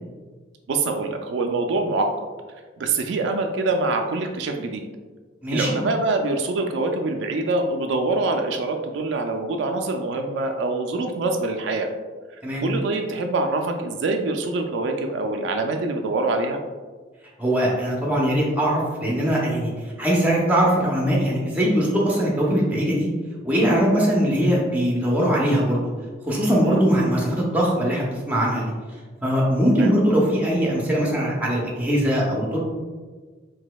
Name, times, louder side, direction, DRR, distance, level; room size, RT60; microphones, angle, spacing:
voice 1, 0.7-2.3 2.8-4.9 5.5-11.9 12.6-16.6 26.6-26.9 29.7-29.9, right 3 dB, 70° right, 4 dB, 0.3 m, -25 dB
voice 2, 5.4-5.8 12.4-12.7 17.4-19.7 20.0-23.1 23.4-25.8 26.2-28.7 29.2-32.6, equal, 10° right, -4 dB, 0.6 m, -21 dB
4.0 x 2.7 x 2.2 m, 1.4 s
head